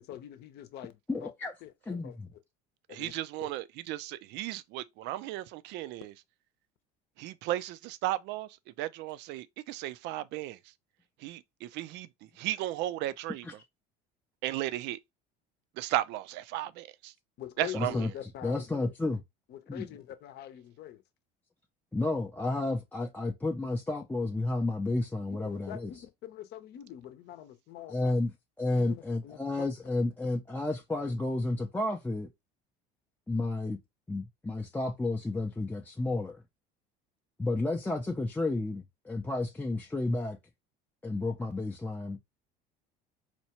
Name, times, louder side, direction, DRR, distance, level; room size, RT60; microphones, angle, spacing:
voice 1, 0.0-1.3 1.6-2.2 2.9-3.1 3.4-3.5 17.4-18.9 19.5-21.0 25.3-28.2 28.7-29.7, left 11 dB, 60° left, 0.7 m, -44 dB
voice 2, 1.1-1.5 1.9-2.3 13.4-13.5 17.7-18.1 18.4-19.2 19.7-19.9 21.9-25.9 27.9-28.3 28.6-32.3 33.3-33.8 34.1-36.4 37.4-40.4 41.0-42.2, left 2 dB, 10° left, 0.5 m, -31 dB
voice 3, 2.9-6.1 7.2-8.5 8.8-10.6 11.2-12.1 12.4-13.5 14.4-15.0 15.8-17.1 17.6-17.9, right 14 dB, 65° right, 0.4 m, -35 dB
4.3 x 2.3 x 2.9 m
supercardioid pair, 85°, 20 cm